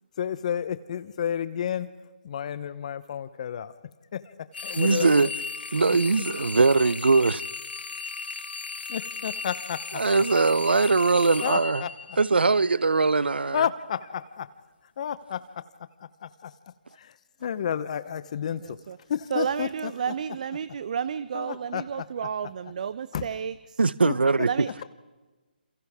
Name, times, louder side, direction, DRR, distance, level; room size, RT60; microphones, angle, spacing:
voice 1, 0.2-1.9 2.2-3.7 4.1-4.3 4.6-5.3 8.9-10.1 11.4-11.9 13.5-14.5 15.0-15.4 16.0-16.5 16.9-18.8 19.1-19.9 21.3-21.8 23.1-23.2 24.0-24.1, left 8 dB, 40° left, 0.9 m, -31 dB
sound 1, 4.5-12.7, left 4 dB, 75° left, 0.9 m, -36 dB
voice 2, 4.8-5.3 5.7-7.4 9.9-11.8 12.2-13.6 23.8-24.5, right 4 dB, 80° right, 0.8 m, -21 dB
voice 3, 18.6-19.0 19.3-23.8 24.4-24.7, right 7 dB, 45° right, 0.7 m, -31 dB
29.0 x 27.5 x 3.6 m
figure-of-eight pair, 155°, 5 cm